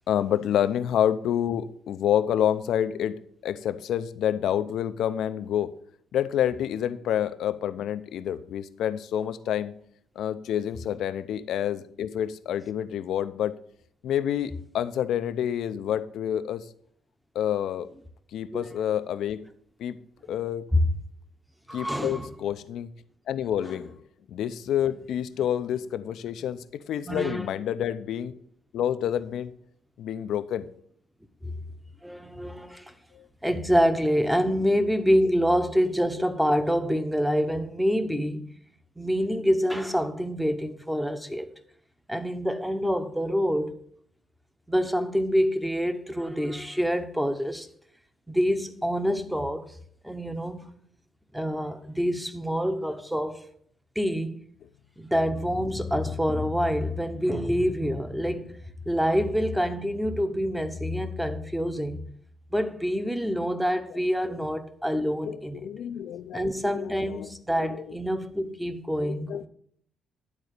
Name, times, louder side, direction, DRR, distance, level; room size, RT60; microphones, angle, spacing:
voice 1, 0.1-5.7 6.1-9.7 10.2-13.5 14.0-16.7 17.3-17.9 18.3-19.4 19.8-20.0 20.3-20.6 21.7-22.9 23.3-24.0 24.3-28.3 28.7-29.5 30.0-30.7 33.1-33.2 63.9-64.0 64.3-64.4 65.2-67.3 67.6-67.9 69.0-69.5, left 10 dB, 75° left, 0.5 m, -28 dB
voice 2, 21.7-22.3 27.1-27.5 31.4-31.5 32.0-32.9 33.4-38.4 39.0-41.5 42.1-43.7 44.7-47.7 48.3-49.7 50.0-50.7 51.3-53.4 54.0-54.4 55.0-58.6 58.9-62.0 62.5-65.7 66.3-69.5, equal, 5° right, 0.9 m, -26 dB
11.0 x 4.1 x 6.5 m
cardioid pair, 90°, 0 cm